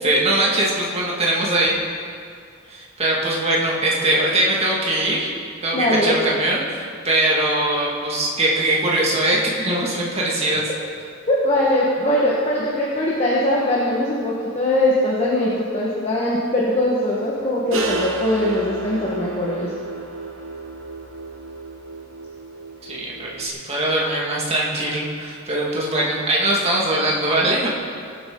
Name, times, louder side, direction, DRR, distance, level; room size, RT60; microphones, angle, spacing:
voice 1, 0.0-1.7 2.7-5.3 5.6-10.7 22.8-27.7, right 1 dB, 30° right, -4 dB, 2.0 m, -21 dB
voice 2, 5.7-6.2 11.3-19.7, left 1 dB, 30° left, -6 dB, 1.4 m, -21 dB
sound 1, 17.7-23.5, right 3 dB, 75° right, 1.1 m, -32 dB
18.5 x 8.1 x 3.9 m, 2.3 s
head